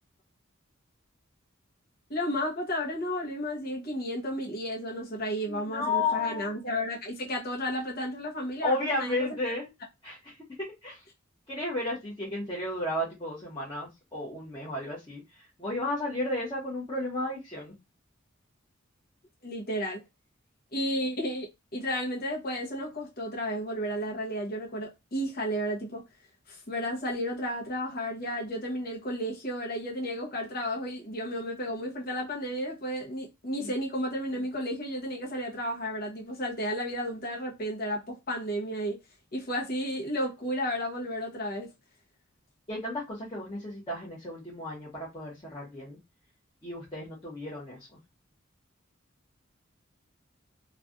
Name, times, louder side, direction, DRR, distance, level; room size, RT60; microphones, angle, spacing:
voice 1, 2.1-9.5 19.4-20.0 20.7-26.0 26.5-39.0 39.3-41.7, equal, 50° left, 0.9 m, -33 dB
voice 2, 5.5-6.6 8.6-9.7 10.0-10.4 10.8-11.0 11.5-15.2 15.6-17.7 33.6-33.7 42.7-46.0 46.6-47.8, left 2 dB, 25° left, 1.0 m, -33 dB
3.1 x 2.4 x 2.5 m
head